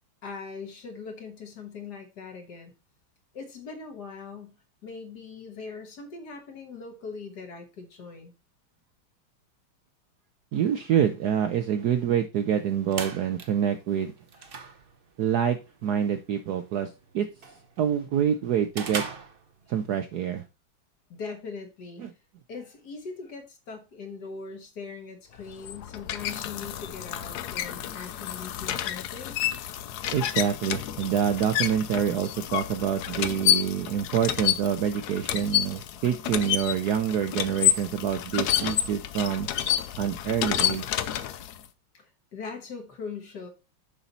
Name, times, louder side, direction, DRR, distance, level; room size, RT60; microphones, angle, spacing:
voice 1, 0.2-2.7 3.3-4.6 4.8-8.3 14.4-14.6 21.1-22.0 22.5-29.4 32.7-32.8 41.9-43.5, left 5 dB, 55° left, 1.7 m, -41 dB
voice 2, 10.5-14.1 15.2-15.6 15.8-16.9 17.1-17.3 17.8-19.0 19.7-20.4 22.0-22.1 30.1-39.5 40.0-40.8, right 8 dB, 70° right, 0.9 m, -26 dB
sound 1, 12.5-20.0, right 5 dB, 50° right, 0.6 m, -41 dB
sound 2, 25.4-41.6, left 11 dB, 70° left, 0.9 m, -29 dB
7.1 x 5.7 x 4.0 m
omnidirectional pair, 2.3 m